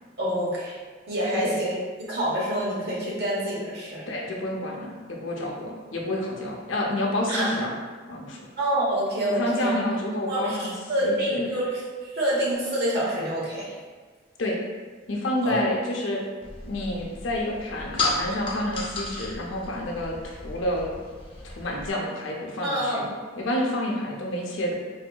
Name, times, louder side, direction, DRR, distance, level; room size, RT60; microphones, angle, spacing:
voice 1, 0.2-0.8 1.1-4.1 7.3-7.5 8.6-9.7 10.3-13.7 15.4-15.6 22.6-23.2, right 1 dB, 60° right, -5 dB, 0.9 m, -27 dB
voice 2, 4.1-7.7 8.1-8.5 9.3-10.7 11.0-11.4 14.4-14.6 15.1-16.2 16.6-20.9 21.4-23.0 23.4-24.7, left 1 dB, 70° left, -1 dB, 0.6 m, -29 dB
sound 1, 16.4-21.9, left 3 dB, 30° left, 0.5 m, -34 dB
3.9 x 2.7 x 2.2 m, 1.5 s
head